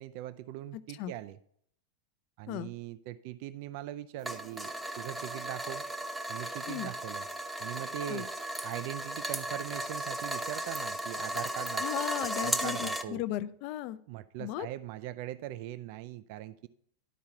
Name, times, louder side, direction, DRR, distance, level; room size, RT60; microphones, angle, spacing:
voice 1, 0.0-1.4 2.4-5.8 6.3-7.3 7.6-8.3 8.6-11.9 12.2-13.2 14.1-16.7, right 13 dB, 45° right, 14 dB, 0.4 m, -41 dB
sound 1, 4.2-13.0, right 1 dB, 5° right, 0.8 m, -36 dB
voice 2, 11.8-14.0 14.4-14.7, left 14 dB, 45° left, 15 dB, 0.5 m, -36 dB
12.0 x 4.6 x 5.6 m, 0.65 s
figure-of-eight pair, 90°, 0 cm